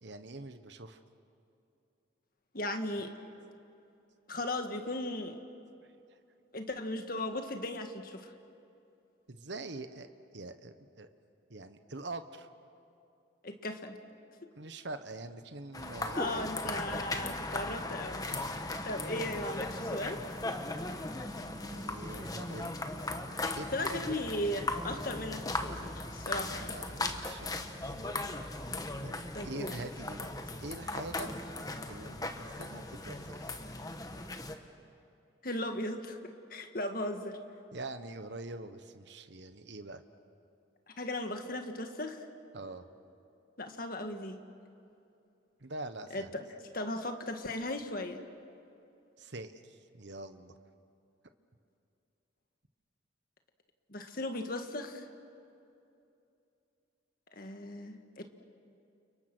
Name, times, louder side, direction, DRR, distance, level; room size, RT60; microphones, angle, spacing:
voice 1, 0.0-1.0 5.8-6.2 9.3-10.1 10.3-11.1 11.5-12.5 14.5-16.4 18.3-18.6 21.7-22.8 23.5-24.1 26.3-28.5 29.0-29.2 29.4-30.3 30.6-31.3 31.9-33.5 37.7-40.0 42.5-42.9 45.6-46.3 49.2-50.5, right 2 dB, 60° right, 9 dB, 1.2 m, -44 dB
voice 2, 2.5-3.1 4.3-5.4 6.5-8.3 13.4-14.0 16.1-18.3 18.8-20.2 23.7-26.8 29.3-29.7 35.4-36.2 36.5-37.4 40.9-42.3 43.6-44.4 46.1-46.4 46.7-48.2 53.9-55.1 57.3-58.2, left 1 dB, 45° left, 5 dB, 1.8 m, -37 dB
sound 1, 15.7-34.6, left 2 dB, 20° left, 1.2 m, -38 dB
30.0 x 29.5 x 6.3 m, 2.7 s
head